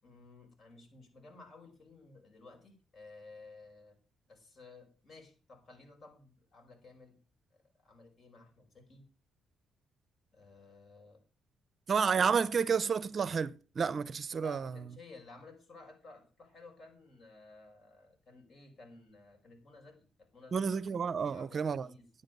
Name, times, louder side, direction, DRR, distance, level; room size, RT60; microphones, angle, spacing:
voice 1, 0.0-4.0 4.3-7.2 7.5-9.0 10.3-11.2 14.4-22.1, left 3 dB, 45° left, 5.4 m, -55 dB
voice 2, 11.9-14.7 20.5-21.9, right 6 dB, 45° right, 0.6 m, -30 dB
12.0 x 9.7 x 5.3 m
cardioid pair, 90°, 0 cm